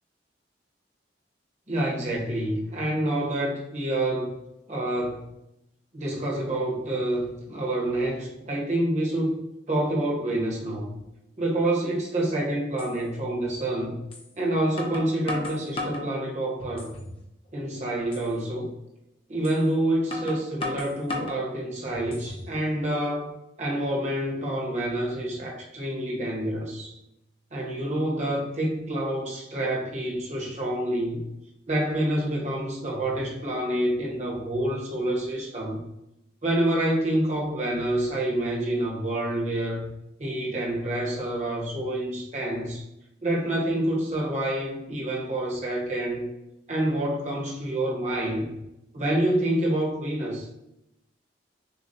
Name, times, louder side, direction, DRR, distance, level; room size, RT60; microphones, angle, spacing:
voice 1, 1.7-4.3 4.7-5.3 5.9-9.4 9.7-10.9 11.4-14.0 14.4-16.9 17.5-18.8 19.3-27.0 27.5-31.3 31.7-35.9 36.4-39.9 40.2-42.8 43.2-46.3 46.7-48.6 48.9-50.5, right 1 dB, 40° right, -2 dB, 1.2 m, -27 dB
sound 1, 12.8-12.9 14.1-14.3 14.8-16.1 16.6-17.1 17.5-17.6 18.1-18.3 19.4-19.6 20.1-21.4 21.9-22.5, left 2 dB, 30° left, 0.7 m, -34 dB
6.7 x 2.3 x 2.7 m, 0.85 s
head